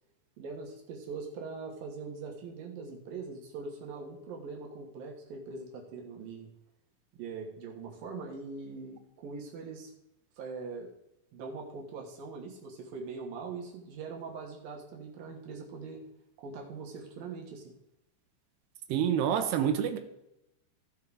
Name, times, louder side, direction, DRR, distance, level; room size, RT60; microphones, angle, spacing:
voice 1, 0.4-6.5 7.1-9.9 10.4-10.9 11.3-16.0 16.4-17.7, right 4 dB, 65° right, 2.7 m, -42 dB
voice 2, 18.9-20.0, right 9 dB, 80° right, 2.8 m, -27 dB
16.0 x 5.6 x 3.6 m
omnidirectional pair, 5.2 m